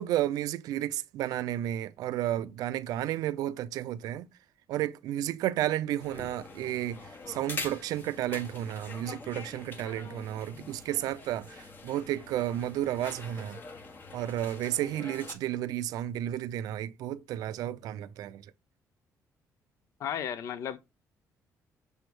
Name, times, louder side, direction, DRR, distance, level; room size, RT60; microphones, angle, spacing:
voice 1, 0.0-4.3 4.7-13.6 14.1-18.5, right 12 dB, 85° right, 0.5 m, -32 dB
sound 1, 6.0-15.3, left 4 dB, 35° left, 1.2 m, -44 dB
voice 2, 20.0-20.8, left 9 dB, 55° left, 0.7 m, -34 dB
7.0 x 3.3 x 6.1 m
cardioid pair, 180°, 6 cm